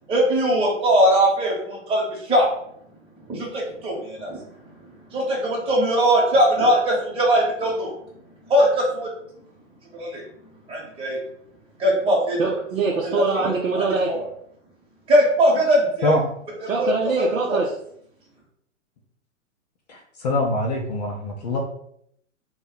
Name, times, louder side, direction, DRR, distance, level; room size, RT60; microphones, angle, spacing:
voice 1, 0.1-2.5 3.3-4.4 5.1-7.9 8.5-9.1 9.9-10.2 10.7-11.2 11.8-12.4 13.0-13.5 13.8-13.9 15.1-16.1 16.8-16.9, equal, 15° right, -4 dB, 0.9 m, -20 dB
voice 2, 12.4-14.1 16.7-17.7, right 4 dB, 85° right, -3 dB, 0.6 m, -23 dB
voice 3, 19.9-21.6, left 2 dB, 35° left, 1 dB, 0.4 m, -24 dB
2.7 x 2.2 x 3.9 m, 0.71 s
figure-of-eight pair, 110°, 39 cm